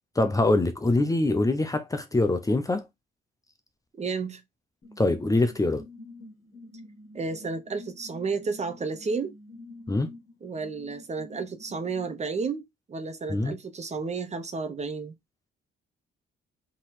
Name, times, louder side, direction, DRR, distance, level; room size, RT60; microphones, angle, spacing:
voice 1, 0.2-2.9 5.0-5.8 9.9-10.1 13.3-13.6, left 2 dB, 15° left, 0.7 m, -24 dB
voice 2, 4.0-4.4 7.1-9.3 10.4-12.6 12.9-15.1, right 4 dB, 35° right, 0.9 m, -32 dB
sound 1, 4.8-12.2, left 2 dB, 45° left, 1.7 m, -48 dB
3.8 x 3.0 x 4.2 m
cardioid pair, 90°, 20 cm